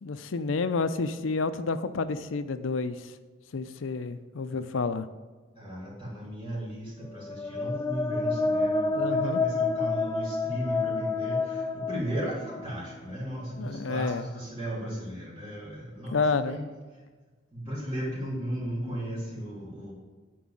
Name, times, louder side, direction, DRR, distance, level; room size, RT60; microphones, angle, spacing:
voice 1, 0.0-3.1 3.5-5.1 8.9-9.4 13.6-14.3 16.1-16.6, left 4 dB, 85° left, 11 dB, 0.5 m, -29 dB
voice 2, 5.6-16.6 17.5-19.9, right 1 dB, 30° right, -8 dB, 3.5 m, -35 dB
sound 1, 7.2-12.9, left 3 dB, 15° left, 0.4 m, -29 dB
10.0 x 4.7 x 7.3 m, 1.3 s
head